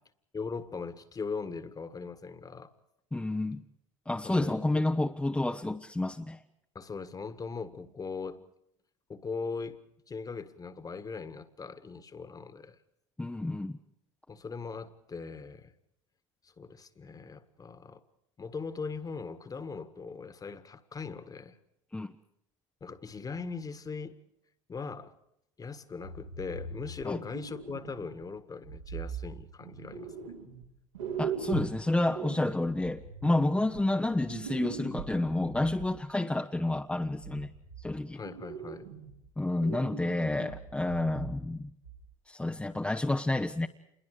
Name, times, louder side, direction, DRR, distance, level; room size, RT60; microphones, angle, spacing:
voice 1, 0.3-2.7 4.2-4.8 6.8-8.5 9.1-9.8 10.1-12.8 14.3-15.7 16.6-18.0 18.4-21.6 22.8-24.2 24.7-25.1 25.6-30.3 38.1-38.9, left 4 dB, 20° left, 1.7 m, -40 dB
voice 2, 3.1-3.6 4.1-6.4 13.2-13.8 21.9-22.1 27.0-27.2 31.2-37.5 37.8-38.2 39.4-41.7 42.3-43.7, left 2 dB, 5° left, 1.0 m, -30 dB
sound 1, 26.0-28.3 28.6-30.7 30.9-35.9 36.9-37.9 38.2-39.3 39.6-41.6 41.8-42.0 42.6-42.7, right 6 dB, 85° right, 4.8 m, -41 dB
28.0 x 22.0 x 5.0 m
hypercardioid pair, 85°, 16 cm